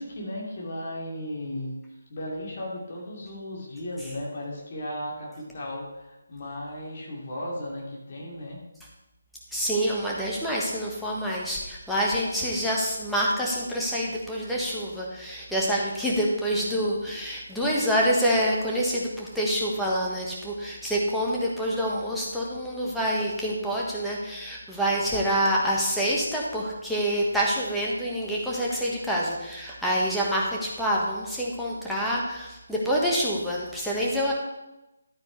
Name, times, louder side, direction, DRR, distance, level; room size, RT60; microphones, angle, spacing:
voice 1, 0.0-1.8 2.1-8.6, left 1 dB, 40° left, -3 dB, 2.8 m, -35 dB
voice 2, 9.5-34.3, equal, ahead, -5 dB, 1.7 m, -27 dB
12.0 x 8.9 x 3.4 m, 0.98 s
figure-of-eight pair, 150°, 0 cm